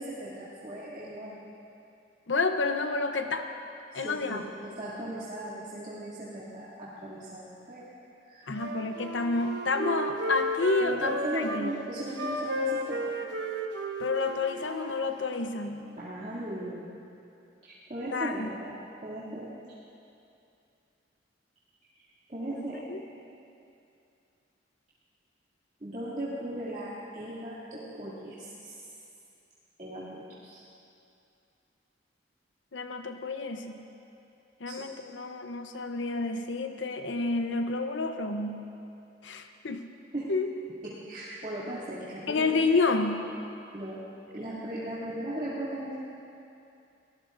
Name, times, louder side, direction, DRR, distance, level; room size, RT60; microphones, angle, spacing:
voice 1, 0.0-1.4 3.9-7.8 8.3-8.5 10.8-13.0 15.9-17.0 17.6-18.7 19.0-19.5 22.3-22.8 25.8-28.8 29.8-30.6 34.7-34.8 40.1-40.3 40.8-42.5 43.7-44.0 44.3-45.9, right 1 dB, 40° right, -10 dB, 2.5 m, -37 dB
voice 2, 2.3-3.5 3.9-4.4 8.5-11.7 14.0-15.9 18.1-18.5 22.5-23.0 32.7-33.8 34.6-38.6 39.2-39.8 40.3-40.5 42.3-43.3, left 3 dB, 85° left, 6 dB, 0.8 m, -29 dB
Wind instrument woodwind instrument, 8.5-11.7 12.1-15.5, equal, 65° right, 1.0 m, -34 dB
23.5 x 18.0 x 2.6 m, 2.6 s
head